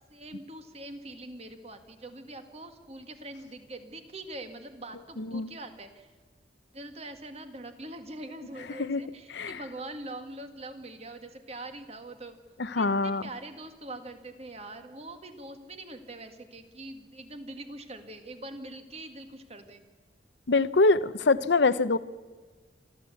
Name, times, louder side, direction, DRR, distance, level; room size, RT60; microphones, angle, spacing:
voice 1, 0.1-6.1 6.7-12.4 12.7-19.8, right 2 dB, 35° right, 7 dB, 1.8 m, -43 dB
voice 2, 5.2-5.5 8.8-9.0 9.3-9.6 12.6-13.2 20.5-22.0, left 3 dB, 70° left, 16 dB, 0.7 m, -24 dB
26.5 x 13.5 x 8.3 m, 1.4 s
head